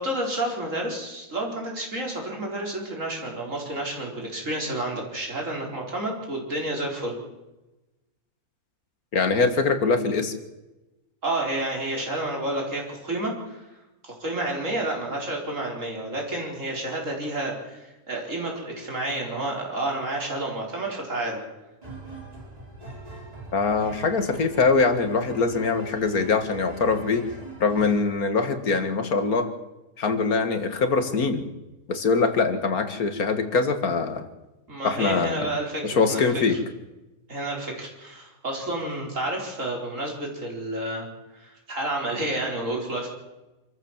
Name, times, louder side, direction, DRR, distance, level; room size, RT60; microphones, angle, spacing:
voice 1, 0.0-7.1 11.2-13.6 14.0-21.4 34.7-36.6 37.3-41.1 41.3-43.1, right 1 dB, 60° right, 0 dB, 5.0 m, -30 dB
voice 2, 9.1-10.3 23.5-27.2 27.6-29.5 30.0-31.4 31.9-34.2 34.8-35.5 35.8-36.6, left 4 dB, 80° left, 9 dB, 2.2 m, -23 dB
sound 1, 21.8-28.1, right 2 dB, 25° right, 3.7 m, -42 dB
26.0 x 14.0 x 7.4 m, 1.0 s
omnidirectional pair, 1.5 m